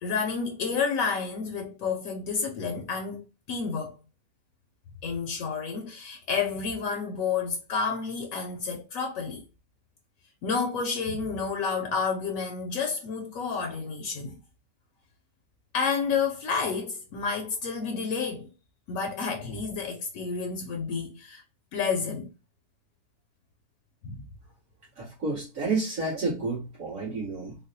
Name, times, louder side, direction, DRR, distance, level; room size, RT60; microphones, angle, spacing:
voice 1, 0.0-3.9 5.0-9.4 10.4-14.4 15.7-18.5 18.9-21.4 21.7-22.3 24.0-24.2, left 5 dB, 75° left, 0.9 m, -30 dB
voice 2, 25.0-27.6, right 3 dB, 65° right, 2.0 m, -30 dB
3.8 x 2.2 x 2.6 m
omnidirectional pair, 1.5 m